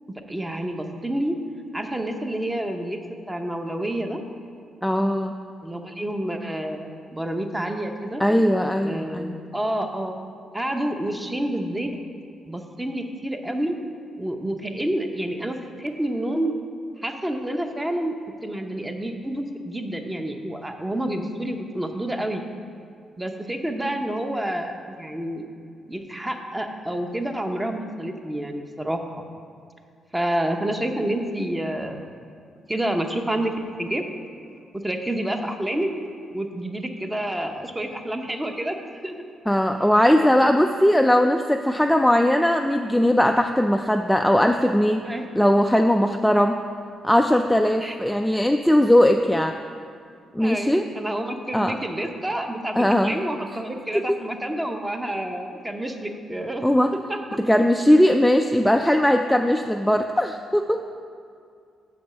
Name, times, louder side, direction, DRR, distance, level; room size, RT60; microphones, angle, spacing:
voice 1, 0.3-1.4 1.7-3.0 3.3-4.2 5.6-8.2 8.8-10.2 10.5-11.9 12.5-13.7 14.2-16.5 17.0-18.1 18.4-22.4 23.2-25.5 25.9-29.2 30.1-32.1 32.7-33.5 33.8-34.2 34.7-35.9 36.3-38.8 39.0-39.2 40.1-40.3 45.0-45.3 47.8-48.1 50.4-56.7 57.1-57.2, right 1 dB, 15° right, 5 dB, 0.8 m, -28 dB
voice 2, 4.8-5.3 8.2-9.4 39.5-45.0 45.4-46.6 47.0-49.6 50.3-50.8 51.5-51.8 52.8-53.1 56.6-56.9 57.4-60.8, left 1 dB, 5° left, 4 dB, 0.3 m, -19 dB
6.9 x 5.3 x 6.6 m, 2.3 s
cardioid pair, 85°, 0 cm